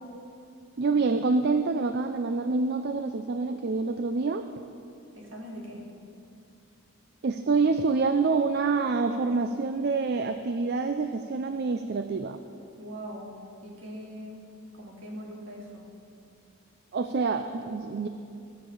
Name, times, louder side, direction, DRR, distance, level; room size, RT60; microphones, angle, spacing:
voice 1, 0.8-4.5 7.2-12.4 16.9-18.1, right 4 dB, 50° right, 8 dB, 0.4 m, -26 dB
voice 2, 5.1-5.9 12.8-13.4 13.6-14.5 14.7-15.9, equal, 65° right, -2 dB, 2.4 m, -41 dB
14.5 x 7.3 x 6.9 m, 2.6 s
head